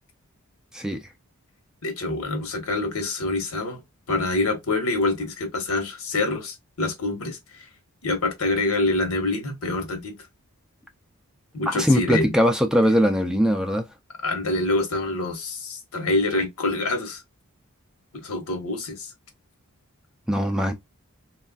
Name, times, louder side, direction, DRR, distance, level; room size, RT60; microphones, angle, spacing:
voice 1, 1.8-3.8 4.1-7.7 8.0-10.2 11.5-12.3 14.2-17.2 18.1-19.1, left 2 dB, 75° left, 1.1 m, -26 dB
voice 2, 11.7-13.8 20.3-20.7, equal, 5° right, 0.4 m, -21 dB
3.3 x 2.4 x 2.3 m
head